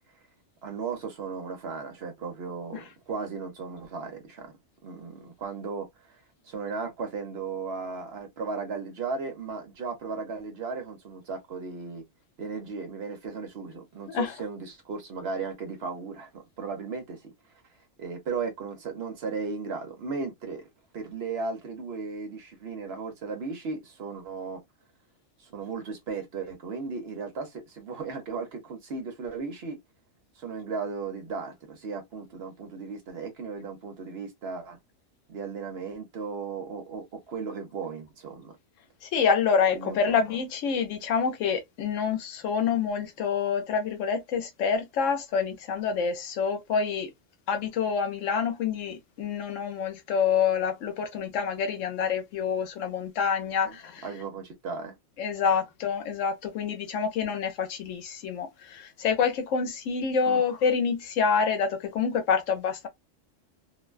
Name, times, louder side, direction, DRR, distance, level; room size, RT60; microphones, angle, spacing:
voice 1, 0.6-4.5 4.8-6.2 6.4-12.0 12.4-17.3 18.0-20.7 20.9-24.6 25.4-29.8 30.4-34.8 35.3-38.5 39.7-40.1 53.6-53.8 54.0-54.9 60.3-60.4, right 4 dB, 60° right, 0.9 m, -36 dB
voice 2, 39.0-47.1 47.5-54.0 55.2-62.9, left 6 dB, 75° left, 1.0 m, -27 dB
2.5 x 2.1 x 2.2 m
omnidirectional pair, 1.3 m